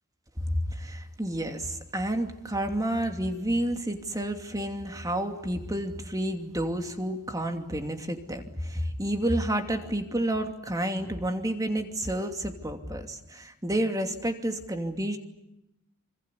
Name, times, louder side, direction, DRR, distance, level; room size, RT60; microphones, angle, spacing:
voice 1, 0.4-15.2, right 1 dB, 15° right, 5 dB, 2.7 m, -30 dB
26.5 x 26.0 x 8.4 m, 0.87 s
head